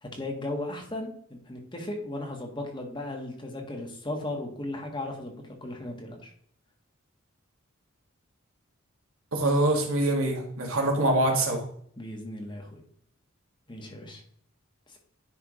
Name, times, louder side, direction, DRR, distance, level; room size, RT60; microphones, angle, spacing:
voice 1, 0.0-6.3 12.0-12.8 13.7-14.2, left 1 dB, 20° left, 1 dB, 1.5 m, -36 dB
voice 2, 9.3-11.6, right 1 dB, 80° right, 1 dB, 2.1 m, -24 dB
10.0 x 3.6 x 4.8 m, 0.62 s
head